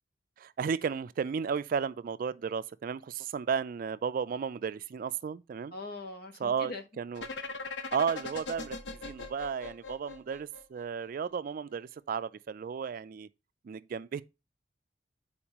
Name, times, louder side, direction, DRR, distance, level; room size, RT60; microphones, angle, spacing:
voice 1, 0.4-5.7 6.4-7.3 7.9-8.8 9.0-13.3 13.6-14.2, right 6 dB, 50° right, 0.3 m, -34 dB
voice 2, 5.7-6.8, left 2 dB, 60° left, 1.1 m, -41 dB
sound 1, 7.2-11.0, left 3 dB, 80° left, 0.8 m, -40 dB
8.6 x 4.3 x 2.9 m
head